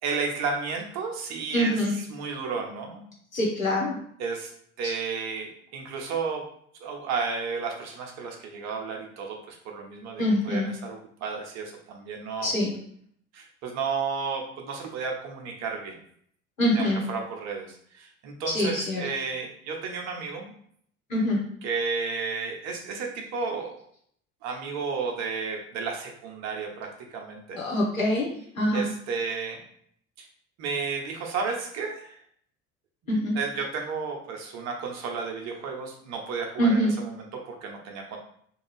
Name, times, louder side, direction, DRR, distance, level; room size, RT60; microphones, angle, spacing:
voice 1, 0.0-3.0 4.2-4.5 4.8-6.4 6.8-12.5 13.3-15.9 16.7-20.5 21.6-23.8 24.4-27.6 28.7-29.6 30.2-30.3 30.6-32.1 33.3-38.2, right 5 dB, 45° right, 2 dB, 0.7 m, -32 dB
voice 2, 1.5-1.9 3.3-4.0 4.8-4.9 10.2-10.7 12.4-12.7 16.6-17.0 18.5-19.0 21.1-21.4 27.6-28.3 28.6-28.9 33.1-33.4 36.6-36.9, equal, 85° left, -4 dB, 0.9 m, -24 dB
2.6 x 2.3 x 3.1 m, 0.64 s
figure-of-eight pair, 60°, 39 cm